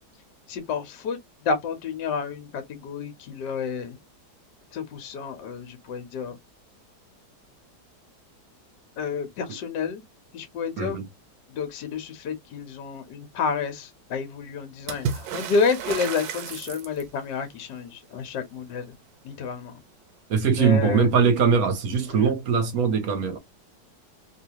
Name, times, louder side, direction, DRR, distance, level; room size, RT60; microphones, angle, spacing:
voice 1, 0.5-4.0 4.7-6.4 9.0-10.0 10.3-11.0 11.5-19.0 19.2-19.8 20.5-21.1 22.1-22.3, left 5 dB, 75° left, 1.5 m, -30 dB
Water / Splash splatter, 14.9-17.3 20.6-20.7 20.9-21.7 22.8-22.9, right 7 dB, 85° right, 1.4 m, -33 dB
voice 2, 20.3-23.4, right 6 dB, 60° right, 1.3 m, -21 dB
3.2 x 3.0 x 2.8 m
omnidirectional pair, 1.9 m